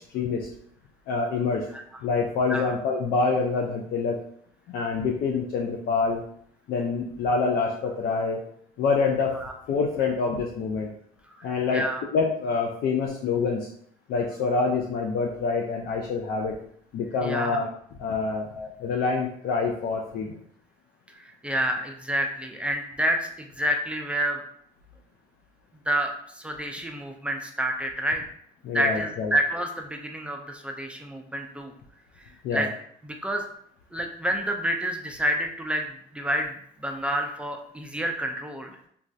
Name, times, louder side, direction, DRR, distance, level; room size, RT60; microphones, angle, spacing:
voice 1, 0.1-0.5 1.1-1.6 2.0-4.2 4.7-6.2 6.7-8.4 8.8-9.4 9.7-10.9 11.4-11.8 12.1-13.7 14.1-16.6 16.9-17.7 18.0-18.5 18.8-20.4 28.6-29.3 32.4-32.7, left 4 dB, 65° left, 0 dB, 0.4 m, -26 dB
voice 2, 17.2-17.6 18.5-18.7 21.1-24.4 25.9-28.2 28.7-31.7 32.5-32.7 33.0-33.4 33.9-36.5 36.8-38.7, right 1 dB, 5° right, 3 dB, 0.3 m, -28 dB
3.1 x 2.3 x 2.5 m, 0.66 s
cardioid pair, 110°, 17 cm